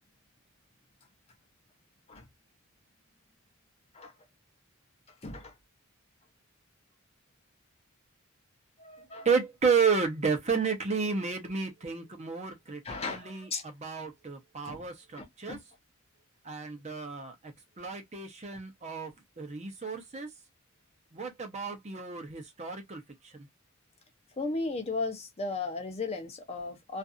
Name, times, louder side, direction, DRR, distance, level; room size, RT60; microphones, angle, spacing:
voice 1, 5.2-5.5 8.8-9.3 12.8-13.6 14.6-14.9 15.2-15.6 24.4-27.0, left 3 dB, 30° left, 0.7 m, -36 dB
voice 2, 9.2-12.8 13.1-13.5 13.8-15.6 16.4-17.3 17.8-19.1 19.4-20.3 21.1-23.0, right 5 dB, 35° right, 0.7 m, -31 dB
2.6 x 2.5 x 2.4 m
head